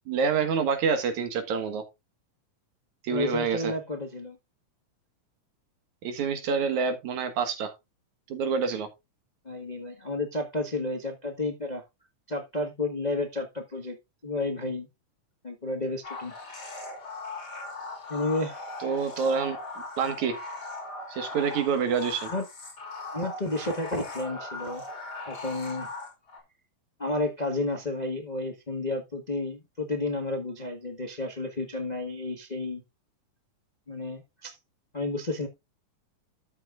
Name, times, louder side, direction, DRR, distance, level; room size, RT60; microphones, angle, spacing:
voice 1, 0.1-1.8 3.0-3.7 6.0-7.7 8.3-8.9 18.8-19.6 20.0-20.4 21.1-22.3, right 6 dB, 80° right, 3.0 m, -27 dB
voice 2, 3.1-4.4 9.4-11.8 12.3-14.0 14.2-14.9 15.4-16.3 18.1-18.6 22.3-22.4 23.1-24.8 25.3-25.9 27.0-32.8 33.9-34.5 34.9-35.5, left 2 dB, 80° left, 0.4 m, -31 dB
sound 1, 16.0-26.4, left 2 dB, 35° left, 3.3 m, -39 dB
12.5 x 7.9 x 2.5 m
omnidirectional pair, 3.4 m